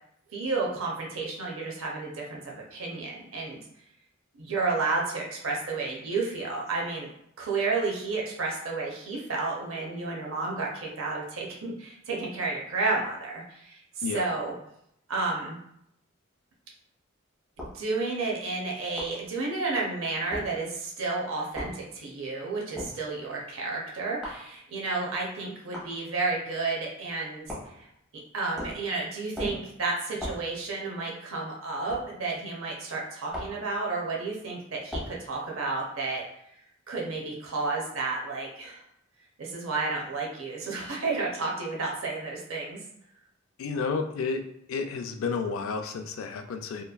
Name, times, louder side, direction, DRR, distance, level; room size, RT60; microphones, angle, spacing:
voice 1, 0.3-3.6 4.3-7.1 7.4-14.6 15.1-15.6 17.6-27.9 28.3-36.2 36.9-38.8 39.4-42.8, right 3 dB, 90° right, -2 dB, 0.6 m, -31 dB
sound 1, 17.6-17.8 19.0-19.2 20.3-20.5 21.6-21.8 22.8-23.0 24.2-24.5 25.7-25.9 27.5-27.8 28.6-28.9 29.4-29.7 30.2-30.5 31.9-32.1 33.3-33.6 34.9-35.2, equal, ahead, 0.8 m, -37 dB
voice 2, 43.6-44.4 44.7-46.8, left 5 dB, 75° left, 6 dB, 0.3 m, -31 dB
2.9 x 2.3 x 2.2 m, 0.75 s
head